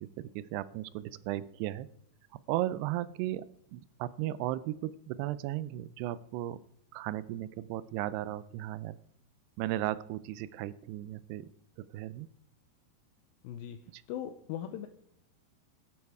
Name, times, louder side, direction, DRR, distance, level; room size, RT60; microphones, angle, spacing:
voice 1, 0.0-1.9 2.5-3.5 3.7-6.6 6.9-9.0 9.6-11.5 11.9-12.3 13.9-14.0, right 14 dB, 85° right, 17 dB, 2.7 m, -35 dB
voice 2, 13.4-13.8 14.1-14.9, left 10 dB, 80° left, 9 dB, 2.2 m, -39 dB
12.5 x 11.0 x 4.7 m, 0.71 s
omnidirectional pair, 4.7 m